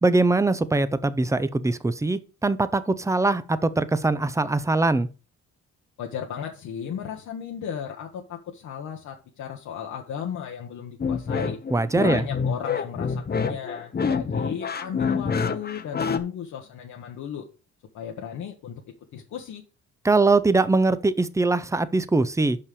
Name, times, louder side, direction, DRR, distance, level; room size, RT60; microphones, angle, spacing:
voice 1, 0.0-5.1 11.7-12.2 20.0-22.6, right 3 dB, 10° right, 0.6 m, -22 dB
voice 2, 6.0-11.6 12.0-17.5 17.9-19.6, left 8 dB, 75° left, 1.3 m, -35 dB
sound 1, 11.0-16.2, left 5 dB, 35° left, 0.9 m, -26 dB
5.7 x 5.4 x 6.6 m
cardioid pair, 90°, 30 cm